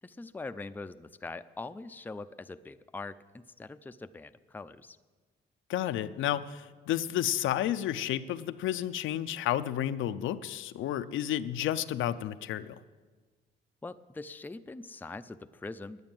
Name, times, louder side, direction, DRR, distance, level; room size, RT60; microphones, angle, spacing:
voice 1, 0.0-5.0 13.8-16.1, left 3 dB, 10° left, 10 dB, 0.4 m, -43 dB
voice 2, 5.7-12.8, left 11 dB, 80° left, 12 dB, 0.5 m, -31 dB
9.8 x 9.5 x 8.9 m, 1.4 s
cardioid pair, 90°, 20 cm